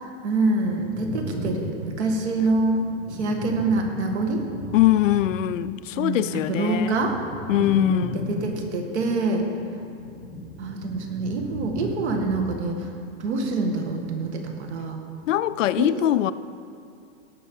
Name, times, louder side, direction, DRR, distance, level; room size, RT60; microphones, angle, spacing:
voice 1, 0.2-4.4 5.9-7.2 7.5-9.5 10.6-12.9 13.2-15.0 15.8-16.0, right 3 dB, 60° right, 2.0 m, -26 dB
sound 1, 0.5-5.8 6.1-14.7 15.0-15.7, right 1 dB, ahead, 0.4 m, -38 dB
voice 2, 4.7-7.0 7.5-8.2 15.3-16.3, left 13 dB, 80° left, 0.6 m, -22 dB
17.5 x 6.2 x 5.5 m
supercardioid pair, 165°, 38 cm